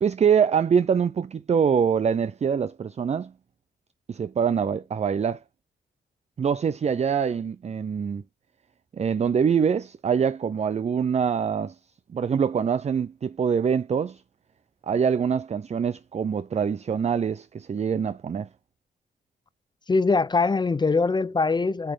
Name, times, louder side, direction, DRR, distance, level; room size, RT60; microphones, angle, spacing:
voice 1, 0.0-3.3 4.1-5.4 6.4-8.2 8.9-11.8 12.1-14.2 14.8-18.5, right 7 dB, 40° right, 0.5 m, -24 dB
voice 2, 19.9-21.9, left 4 dB, 25° left, 0.5 m, -22 dB
8.9 x 3.2 x 3.4 m
cardioid pair, 70°, 18 cm